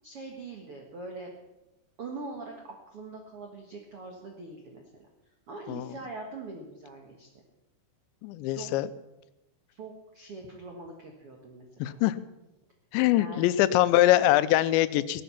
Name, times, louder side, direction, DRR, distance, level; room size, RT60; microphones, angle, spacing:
voice 1, 0.0-1.3 2.0-4.8 5.5-7.3 8.5-8.7 9.7-11.9 13.1-13.7, right 3 dB, 80° right, 1 dB, 1.3 m, -42 dB
voice 2, 8.2-8.9 11.8-12.2 12.9-15.2, left 14 dB, 90° left, 15 dB, 2.9 m, -23 dB
16.0 x 11.5 x 5.7 m, 0.96 s
omnidirectional pair, 5.1 m